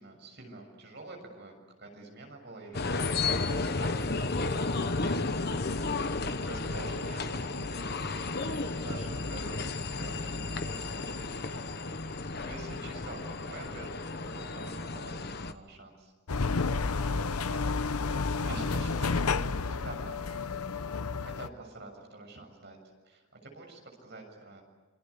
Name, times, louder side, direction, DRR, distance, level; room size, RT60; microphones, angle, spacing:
voice 1, 0.0-4.9 5.2-5.8 6.2-11.9 12.4-16.1 17.5-17.7 18.1-20.9 21.2-22.8 23.0-24.6, right 2 dB, 50° right, 3 dB, 6.9 m, -47 dB
sound 1, 2.7-15.5, left 3 dB, 45° left, 1.1 m, -33 dB
voice 2, 8.3-8.9 16.7-18.4, left 3 dB, 70° left, 2 dB, 7.3 m, -53 dB
sound 2, 16.3-21.5, left 4 dB, 90° left, 0.8 m, -30 dB
27.5 x 25.5 x 8.5 m, 1.2 s
head